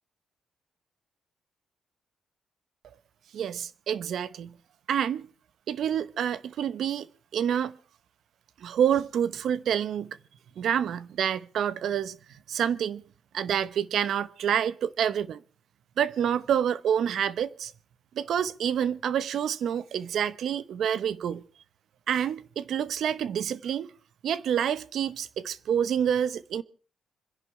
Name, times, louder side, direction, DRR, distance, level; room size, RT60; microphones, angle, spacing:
voice 1, 3.3-4.6 4.9-5.3 5.7-7.1 7.3-7.7 8.6-10.2 10.6-12.2 12.5-13.0 13.3-15.4 16.0-17.7 18.1-21.4 22.1-23.9 24.2-26.6, right 9 dB, 70° right, 0.9 m, -28 dB
25.5 x 11.0 x 4.8 m
cardioid pair, 105°, 0 cm